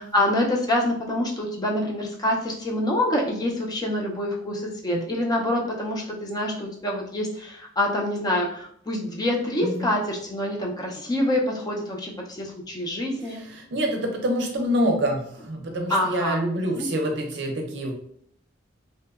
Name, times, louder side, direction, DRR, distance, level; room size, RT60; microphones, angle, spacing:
voice 1, 0.0-13.4 15.9-16.9, left 1 dB, 20° left, -1 dB, 0.4 m, -26 dB
voice 2, 13.3-17.9, equal, 65° right, 2 dB, 0.5 m, -26 dB
2.7 x 2.1 x 2.3 m, 0.64 s
head